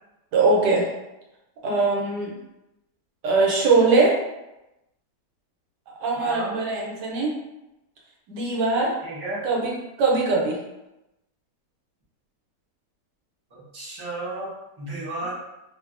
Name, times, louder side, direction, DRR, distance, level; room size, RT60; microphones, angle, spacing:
voice 1, 0.3-0.9 1.6-2.3 3.2-4.2 6.0-7.3 8.3-8.9 9.4-9.7 10.0-10.6, right 3 dB, 85° right, -2 dB, 1.3 m, -21 dB
voice 2, 6.2-6.6 9.0-9.5 13.5-14.5 14.8-15.3, right 1 dB, 25° right, -9 dB, 0.7 m, -33 dB
2.6 x 2.6 x 2.5 m, 0.94 s
omnidirectional pair, 1.8 m